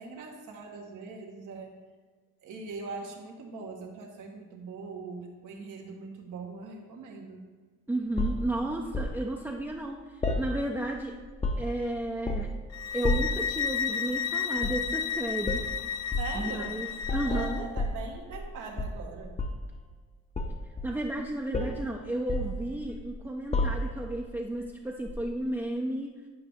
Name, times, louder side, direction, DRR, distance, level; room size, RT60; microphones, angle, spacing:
voice 1, 0.0-1.7 2.4-7.4 16.2-16.7 17.2-19.4, right 4 dB, 80° right, 1 dB, 1.4 m, -41 dB
voice 2, 7.9-11.2 11.6-12.5 12.9-15.6 16.3-17.6 20.8-26.1, right 1 dB, 5° right, 0 dB, 0.6 m, -33 dB
sound 1, 8.2-9.2 10.2-11.0 11.2-11.8 12.2-12.6 13.0-13.4 14.6-14.9 15.4-15.7 16.1-16.4 17.0-18.5 18.8-19.7 20.3-21.2 21.5-21.8 22.3-23.1 23.5-24.1 25.1-25.2, left 2 dB, 20° left, 0.8 m, -31 dB
sound 2, 12.7-17.6, left 8 dB, 60° left, 0.5 m, -32 dB
10.5 x 5.1 x 3.5 m, 1.4 s
cardioid pair, 90°, 30 cm